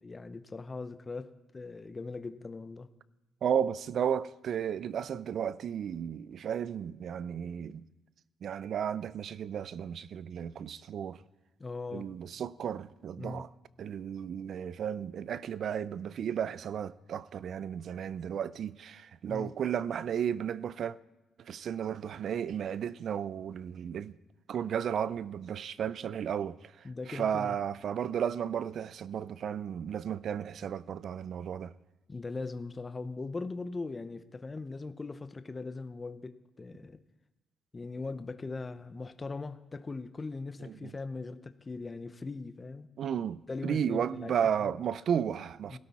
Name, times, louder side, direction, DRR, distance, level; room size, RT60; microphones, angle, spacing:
voice 1, 0.0-2.9 11.6-12.1 13.2-13.4 19.3-19.5 26.8-27.6 32.1-37.0 37.7-42.9 43.5-44.7 45.7-45.8, left 3 dB, 25° left, 0.7 m, -40 dB
voice 2, 3.4-7.8 8.4-11.2 11.9-13.5 13.8-21.0 21.4-24.2 24.5-31.7 40.6-40.9 43.0-45.8, right 8 dB, 60° right, 0.5 m, -34 dB
17.0 x 12.0 x 4.2 m
cardioid pair, 90°, 0 cm